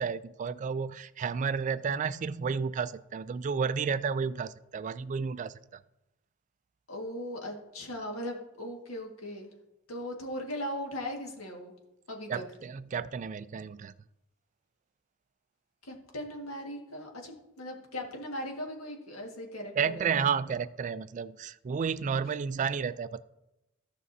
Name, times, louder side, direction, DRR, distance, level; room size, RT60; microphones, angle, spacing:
voice 1, 0.0-5.5 12.3-13.9 19.8-23.2, right 6 dB, 35° right, 15 dB, 0.3 m, -31 dB
voice 2, 6.9-9.5 9.9-11.7 12.1-12.4 15.8-20.3, left 1 dB, 85° left, 1 dB, 1.7 m, -39 dB
15.0 x 6.1 x 2.7 m, 0.92 s
head